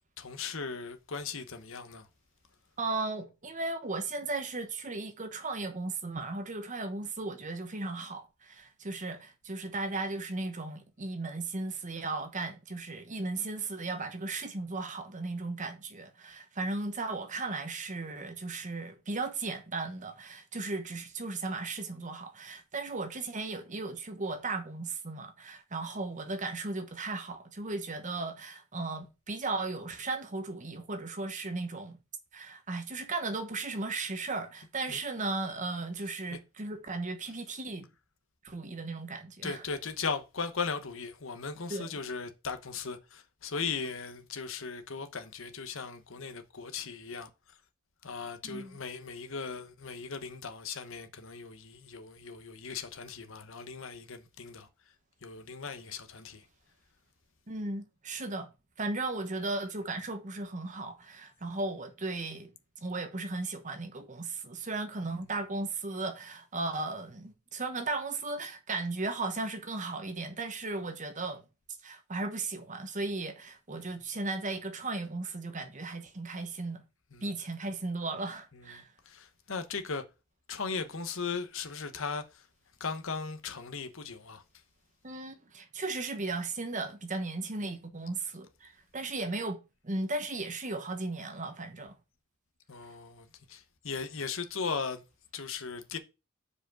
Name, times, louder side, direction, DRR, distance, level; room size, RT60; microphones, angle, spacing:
voice 1, 0.2-2.1 34.9-35.0 39.4-47.3 48.0-54.7 55.2-56.4 73.7-74.0 77.1-77.3 78.5-80.0 80.5-82.5 82.8-84.4 92.7-95.0 95.3-96.0, left 5 dB, 65° left, 1.0 m, -38 dB
voice 2, 2.8-32.0 32.3-37.9 38.4-39.6 41.7-41.9 48.4-48.8 57.5-58.5 58.8-62.5 62.8-71.4 71.8-76.8 77.2-78.9 85.0-91.9, right 3 dB, 35° right, 1.1 m, -36 dB
5.0 x 4.9 x 6.3 m
head